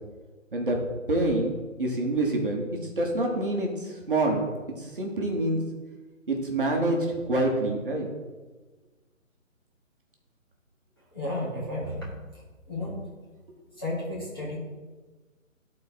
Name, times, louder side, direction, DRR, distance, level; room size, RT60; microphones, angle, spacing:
voice 1, 0.5-1.5 1.8-2.6 3.0-4.4 4.8-5.6 6.3-8.1, right 2 dB, 40° right, 0 dB, 1.3 m, -26 dB
voice 2, 11.1-12.1 12.7-13.0 13.8-14.6, left 1 dB, 20° left, -7 dB, 1.2 m, -32 dB
12.5 x 4.3 x 4.2 m, 1.3 s
hypercardioid pair, 175°, 40 cm